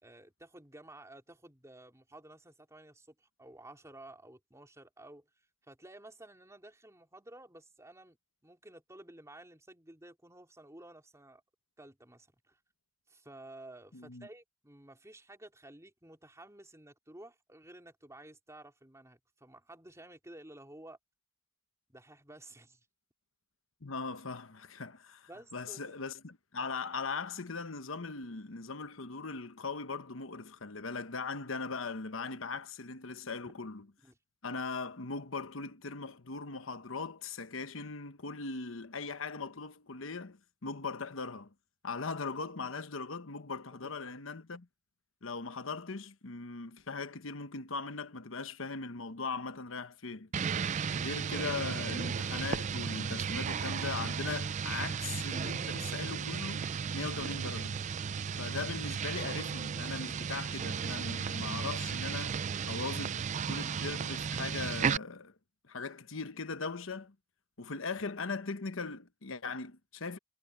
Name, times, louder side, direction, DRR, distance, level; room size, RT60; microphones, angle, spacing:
voice 1, 0.0-5.3 5.7-8.2 8.4-11.4 11.8-12.6 13.1-21.0 21.9-22.9 25.3-26.0 34.0-34.2 43.7-44.1, right 1 dB, 15° right, 3.6 m, -53 dB
voice 2, 13.9-14.3 23.8-33.9 34.4-41.5 41.8-44.7 45.2-50.3 50.9-57.8 58.4-62.4 62.6-65.3 65.6-67.1 67.6-70.2, left 4 dB, 85° left, 1.2 m, -39 dB
sound 1, 50.3-65.0, right 6 dB, 35° right, 0.3 m, -34 dB
head